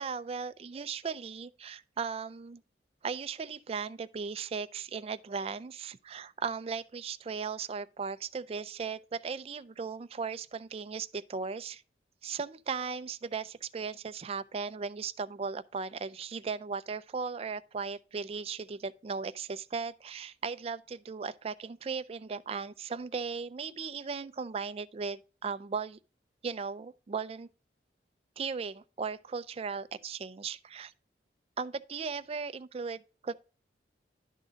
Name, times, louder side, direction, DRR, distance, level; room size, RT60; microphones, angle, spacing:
voice 1, 0.0-2.6 3.0-11.8 12.2-26.0 26.4-27.5 28.4-30.9 31.6-33.3, right 5 dB, 35° right, 0.4 m, -37 dB
11.0 x 3.7 x 3.8 m
head